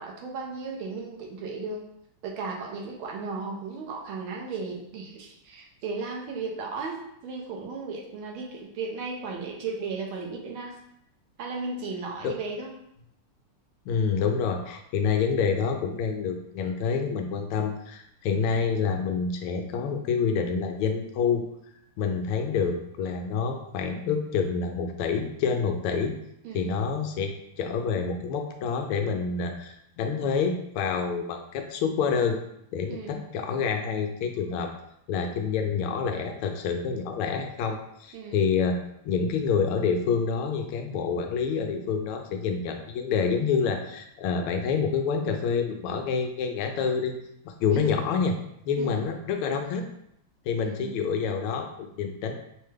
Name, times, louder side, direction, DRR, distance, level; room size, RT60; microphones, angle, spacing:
voice 1, 0.0-1.8 2.2-10.8 11.4-12.7 26.4-26.7 32.9-33.2 38.1-38.4 47.7-48.0 48.8-49.0 50.6-51.0, right 4 dB, 75° right, 0 dB, 1.6 m, -35 dB
voice 2, 13.9-21.4 22.0-26.1 26.5-27.3 27.6-32.4 32.7-34.7 35.1-38.8 39.0-47.1 47.4-48.3 48.7-49.8 50.5-52.3, left 6 dB, 80° left, 4 dB, 1.5 m, -27 dB
5.4 x 2.2 x 3.2 m, 0.75 s
omnidirectional pair, 2.4 m